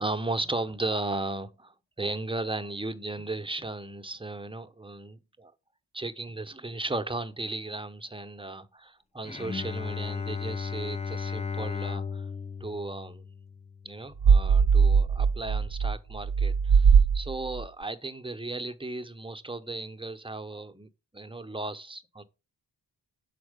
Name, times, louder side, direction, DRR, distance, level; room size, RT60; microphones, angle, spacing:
voice 1, 0.0-5.5 5.9-12.3 12.6-13.3 13.8-22.2, right 2 dB, 10° right, 0.7 m, -35 dB
Bowed string instrument, 9.2-14.5, left 5 dB, 15° left, 0.4 m, -35 dB
sound 1, 14.2-17.6, right 6 dB, 65° right, 0.6 m, -21 dB
7.3 x 4.3 x 5.0 m
wide cardioid pair, 50°, 44 cm